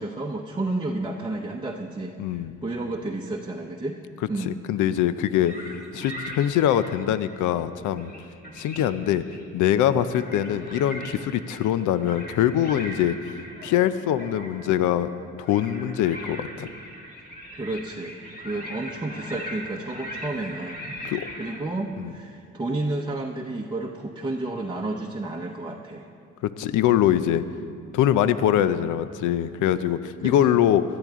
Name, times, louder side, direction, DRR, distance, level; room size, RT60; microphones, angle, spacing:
voice 1, 0.0-4.0 4.3-4.6 17.5-18.2 18.4-20.8 21.4-26.1 30.2-30.7, right 2 dB, 15° right, -1 dB, 0.8 m, -31 dB
voice 2, 2.2-2.6 4.5-5.5 5.9-8.1 8.5-9.2 9.5-13.2 13.6-15.1 15.4-16.7 21.0-21.3 22.0-22.1 26.4-27.4 27.9-30.8, left 11 dB, 85° left, 13 dB, 0.5 m, -23 dB
sound 1, 5.4-7.5 7.8-9.5 9.9-21.6, equal, 30° left, 2.2 m, -40 dB
17.5 x 12.0 x 3.6 m, 2.3 s
cardioid pair, 90°, 30 cm